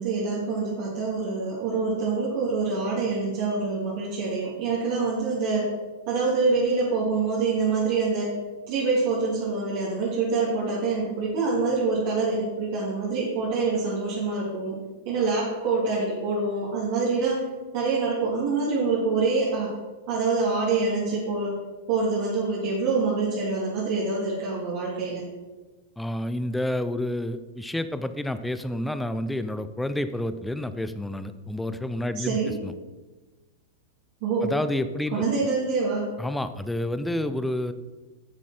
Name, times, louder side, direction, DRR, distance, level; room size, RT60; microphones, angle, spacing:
voice 1, 0.0-5.7 6.1-8.3 8.7-14.8 15.0-17.4 17.7-19.7 20.1-21.5 21.9-25.2 32.1-32.5 34.2-34.5 35.1-36.1, right 4 dB, 55° right, -7 dB, 3.4 m, -25 dB
voice 2, 26.0-32.7 34.4-35.2 36.2-37.7, left 1 dB, 5° left, 11 dB, 0.7 m, -29 dB
13.0 x 7.3 x 4.4 m, 1.2 s
hypercardioid pair, 100°, 0 cm